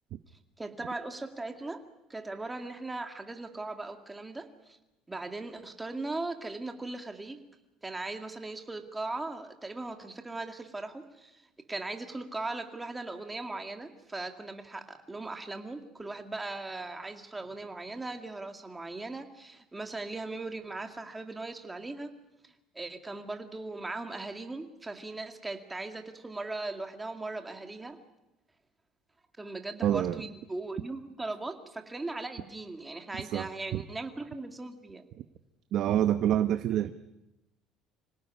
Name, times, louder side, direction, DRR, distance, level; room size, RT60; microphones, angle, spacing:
voice 1, 0.6-1.8 2.1-4.8 5.1-7.4 7.8-11.4 11.7-22.1 22.4-28.0 29.4-35.0, right 2 dB, 10° right, 6 dB, 2.2 m, -39 dB
voice 2, 29.8-30.2 33.3-33.8 35.7-36.9, right 11 dB, 50° right, 10 dB, 0.9 m, -27 dB
26.0 x 17.5 x 9.8 m, 0.96 s
cardioid pair, 145°, 0 cm